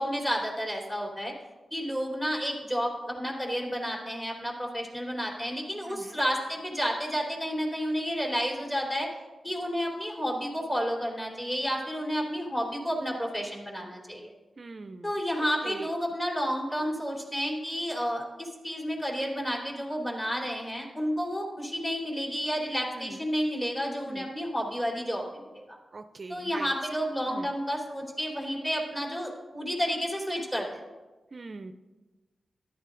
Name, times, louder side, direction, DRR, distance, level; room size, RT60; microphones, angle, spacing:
voice 1, 0.0-1.3 1.7-9.1 9.4-14.3 15.0-25.8 26.3-30.8, equal, 20° left, -2 dB, 3.3 m, -31 dB
voice 2, 5.9-6.2 14.6-15.1 15.4-15.9 22.9-23.3 24.1-24.3 25.9-26.7 27.3-27.5 31.3-31.7, right 3 dB, 45° right, 9 dB, 0.4 m, -42 dB
14.0 x 11.5 x 2.5 m, 1.2 s
cardioid pair, 75°, 0 cm